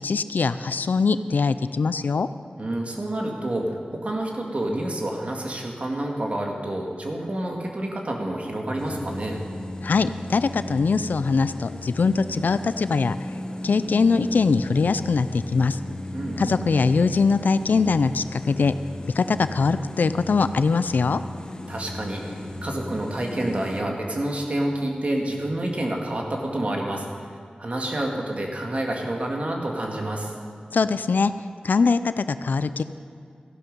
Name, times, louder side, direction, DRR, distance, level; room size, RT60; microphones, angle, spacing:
voice 1, 0.0-2.3 9.8-13.2 13.6-15.8 16.4-18.7 19.1-21.2 30.7-31.3 31.6-32.8, left 4 dB, 85° left, 13 dB, 0.4 m, -22 dB
voice 2, 2.6-9.4 16.1-16.6 21.7-27.1 27.6-30.3, right 1 dB, 50° right, 0 dB, 1.9 m, -28 dB
sound 1, 8.8-23.8, left 1 dB, 30° left, 1.2 m, -36 dB
14.5 x 11.5 x 5.4 m, 2.2 s
wide cardioid pair, 85°, 3 cm